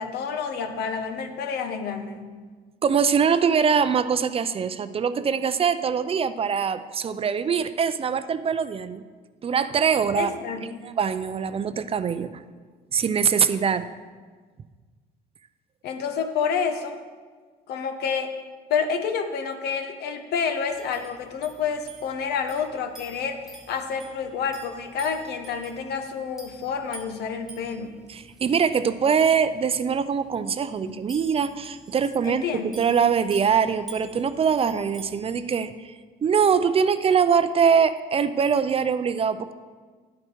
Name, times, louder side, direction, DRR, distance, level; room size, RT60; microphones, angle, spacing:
voice 1, 0.0-2.3 10.1-10.9 15.8-17.0 17.7-18.3 18.7-27.9 30.9-31.0 32.2-32.7, left 6 dB, 70° left, 7 dB, 1.1 m, -29 dB
voice 2, 2.8-9.0 9.4-10.3 10.8-12.4 12.9-13.9 28.1-35.9 36.2-39.5, right 6 dB, 35° right, 12 dB, 0.5 m, -23 dB
sound 1, 20.7-35.5, right 2 dB, ahead, 1.5 m, -49 dB
11.0 x 8.8 x 4.7 m, 1.5 s
cardioid pair, 110°, 17 cm